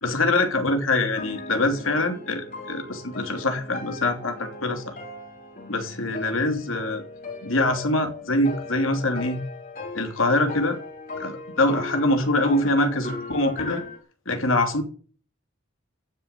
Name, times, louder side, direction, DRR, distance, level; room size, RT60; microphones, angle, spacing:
voice 1, 0.0-5.0 5.7-7.0 7.4-9.4 9.9-10.8 11.2-13.8 14.2-14.8, left 2 dB, 80° left, 3.2 m, -24 dB
sound 1, 1.1-14.0, left 3 dB, 45° left, 5.0 m, -38 dB
14.5 x 7.0 x 8.9 m
head